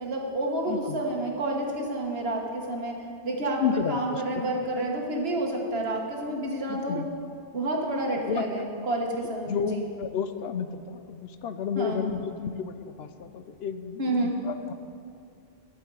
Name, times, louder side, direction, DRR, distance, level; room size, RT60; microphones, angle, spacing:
voice 1, 0.0-7.0 7.5-9.8 11.7-12.0 14.0-14.3, right 1 dB, 70° right, 0 dB, 1.6 m, -29 dB
voice 2, 0.7-1.0 3.6-4.4 6.7-7.1 8.3-8.5 9.2-14.7, left 7 dB, 75° left, 10 dB, 0.8 m, -31 dB
12.5 x 8.8 x 4.7 m, 2.5 s
omnidirectional pair, 1.1 m